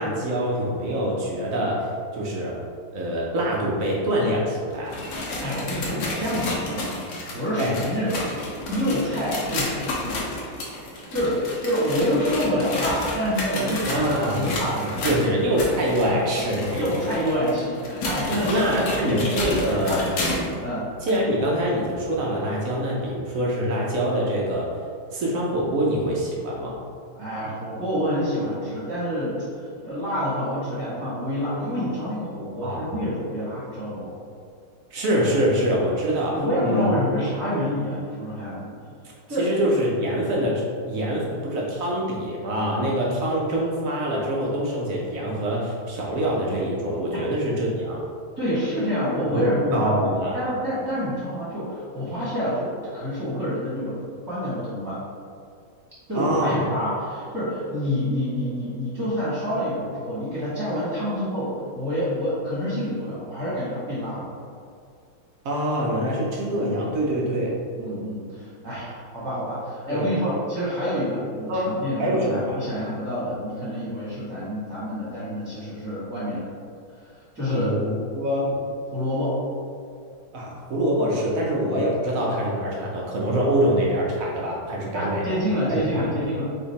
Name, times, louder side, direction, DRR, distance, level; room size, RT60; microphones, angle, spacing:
voice 1, 0.0-1.9 2.1-2.6 2.9-5.0 7.6-7.8 13.9-14.4 14.8-16.9 18.2-20.0 21.0-24.7 25.1-26.8 32.6-32.9 34.9-36.9 37.5-37.6 39.4-48.0 49.3-49.4 49.7-50.4 56.1-56.6 65.4-67.5 69.9-70.0 71.5-72.6 77.5-78.5 80.3-85.4 85.9-86.2, equal, 70° right, -3 dB, 0.8 m, -25 dB
sound 1, 4.7-20.6 21.1-21.2 21.9-22.0 22.9-23.0, left 2 dB, 65° left, 1.4 m, -31 dB
voice 2, 5.4-8.3 8.7-10.2 10.9-15.2 16.1-16.2 16.7-19.6 19.9-20.3 20.6-20.9 27.1-34.1 36.3-38.8 39.3-39.5 47.1-47.2 48.4-55.0 56.1-64.2 67.8-76.5 77.3-77.7 78.5-78.6 78.9-79.3 84.9-86.4, equal, 10° right, -11 dB, 1.1 m, -27 dB
4.4 x 2.8 x 4.0 m, 2.3 s
omnidirectional pair, 2.1 m